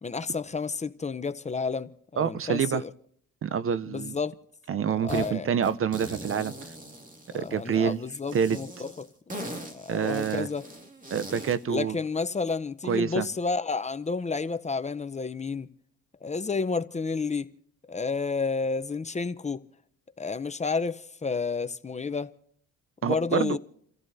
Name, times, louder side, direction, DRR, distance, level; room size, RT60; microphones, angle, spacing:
voice 1, 0.0-2.9 3.9-4.4 5.0-5.5 7.3-9.1 9.7-10.7 11.7-15.7 16.2-17.5 17.9-19.6 20.2-22.3 23.0-23.6, left 4 dB, 25° left, 0.7 m, -30 dB
voice 2, 2.2-2.8 3.4-4.2 4.7-6.5 7.3-8.0 8.3-8.6 9.9-10.5 11.1-12.0 12.9-13.3 23.0-23.6, right 7 dB, 45° right, 0.7 m, -27 dB
sound 1, 5.1-5.3 5.6-7.8 8.3-11.6, right 1 dB, 25° right, 2.3 m, -40 dB
29.5 x 15.0 x 2.7 m
cardioid pair, 90°, 30 cm